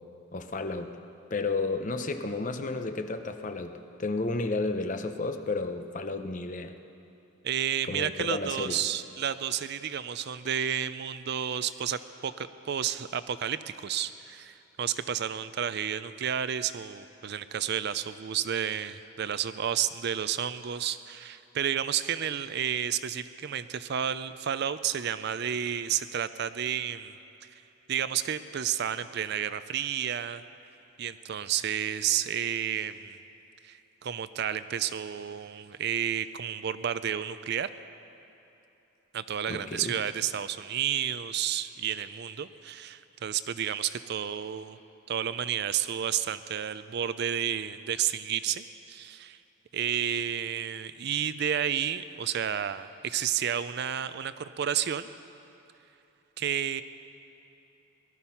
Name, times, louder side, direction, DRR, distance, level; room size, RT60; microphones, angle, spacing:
voice 1, 0.3-1.0 1.3-6.7 7.9-8.8 39.5-40.0, left 3 dB, 35° left, 8 dB, 0.7 m, -32 dB
voice 2, 7.4-27.2 27.9-30.4 31.0-33.2 33.6-37.7 39.1-44.8 45.1-49.4 49.7-55.1 56.4-56.8, right 9 dB, 50° right, 13 dB, 0.4 m, -31 dB
19.0 x 12.5 x 5.7 m, 2.9 s
head